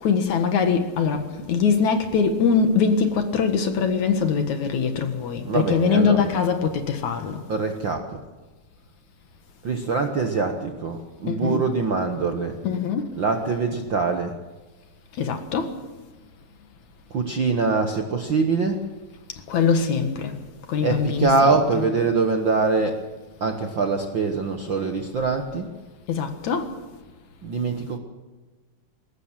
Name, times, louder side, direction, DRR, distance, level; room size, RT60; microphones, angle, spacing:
voice 1, 0.0-7.4 11.3-11.6 12.6-13.0 15.2-15.7 19.5-20.3 20.7-21.9 26.1-26.7, left 6 dB, 60° left, 2.8 m, -22 dB
voice 2, 5.4-6.3 7.5-8.2 9.6-12.6 13.1-14.4 17.1-18.8 20.8-23.0 23.4-25.7 27.4-28.0, right 4 dB, 65° right, 1.2 m, -24 dB
21.0 x 18.0 x 7.5 m
omnidirectional pair, 4.0 m